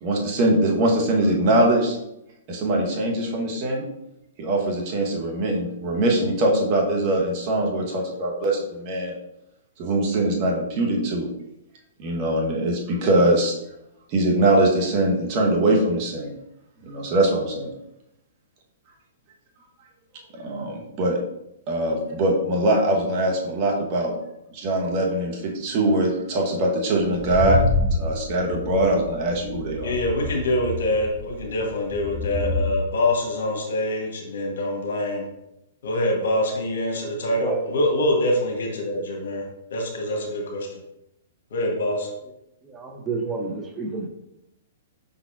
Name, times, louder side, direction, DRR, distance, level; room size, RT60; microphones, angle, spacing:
voice 1, 0.0-2.0 2.5-3.8 4.4-9.1 9.8-11.3 12.0-13.6 14.1-16.3 16.8-17.7 20.3-21.2 21.7-24.1 24.5-27.6 27.9-29.9, right 1 dB, 40° right, -1 dB, 1.1 m, -22 dB
sound 1, 27.0-32.7, left 2 dB, 5° left, 0.9 m, -27 dB
voice 2, 29.8-35.3 35.8-39.4 39.7-40.7 41.5-42.1, left 1 dB, 65° left, 1 dB, 1.0 m, -25 dB
voice 3, 42.7-44.1, right 3 dB, 15° right, 1 dB, 0.7 m, -29 dB
5.3 x 4.0 x 2.5 m, 0.84 s
hypercardioid pair, 115°, 0 cm